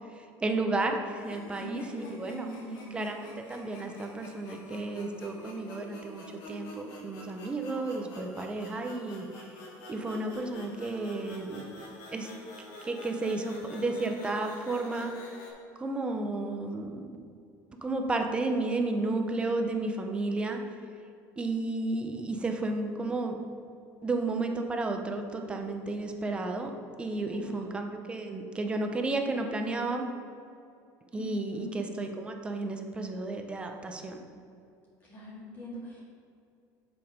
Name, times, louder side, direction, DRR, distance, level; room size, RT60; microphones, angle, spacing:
voice 1, 0.1-2.5 2.9-9.3 9.9-11.7 12.1-12.3 12.8-15.1 15.8-17.1 17.8-20.6 21.4-23.4 24.0-26.7 27.0-30.1 31.1-34.2, right 2 dB, 15° right, 4 dB, 0.7 m, -32 dB
sound 1, 1.2-15.5, left 1 dB, 70° left, 2.0 m, -47 dB
voice 2, 1.6-3.1 27.3-27.8 31.1-31.8 35.0-36.0, equal, 25° left, -7 dB, 1.9 m, -42 dB
7.4 x 5.4 x 5.1 m, 2.5 s
cardioid pair, 160°, 8 cm